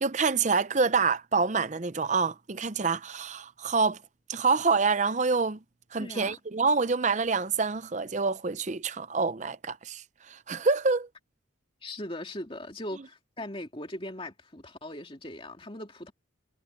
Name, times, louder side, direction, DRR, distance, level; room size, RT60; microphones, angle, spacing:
voice 1, 0.0-4.0 4.3-5.6 5.9-11.1, right 4 dB, 35° right, 0.6 m, -27 dB
voice 2, 6.0-6.3 11.8-16.1, left 1 dB, 25° left, 2.5 m, -39 dB
head